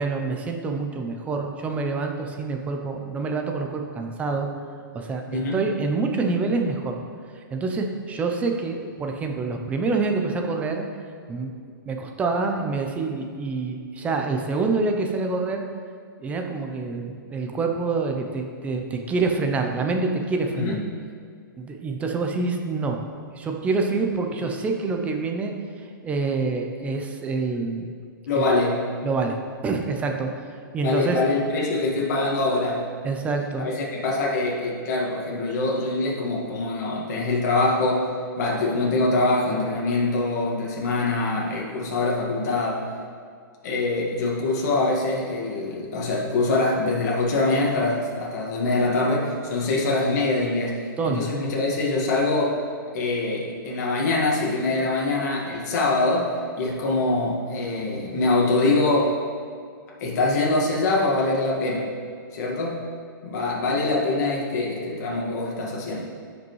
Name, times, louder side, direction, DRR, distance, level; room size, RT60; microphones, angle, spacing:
voice 1, 0.0-4.5 4.9-7.0 7.4-10.8 11.3-11.6 11.9-15.6 16.2-20.8 21.6-23.0 23.3-25.5 26.0-27.9 28.3-28.4 29.0-29.4 29.6-30.3 30.7-31.2 33.0-33.7 51.0-51.3, right 3 dB, 10° right, 3 dB, 0.6 m, -26 dB
voice 2, 5.3-5.6 20.6-20.8 28.3-28.8 30.8-32.8 33.6-38.1 38.4-42.8 43.6-52.6 52.9-59.2 60.0-61.9 62.3-62.9 63.2-66.0, left 2 dB, 50° left, -3 dB, 1.8 m, -24 dB
15.5 x 5.2 x 3.2 m, 2.1 s
hypercardioid pair, 155°, 12 cm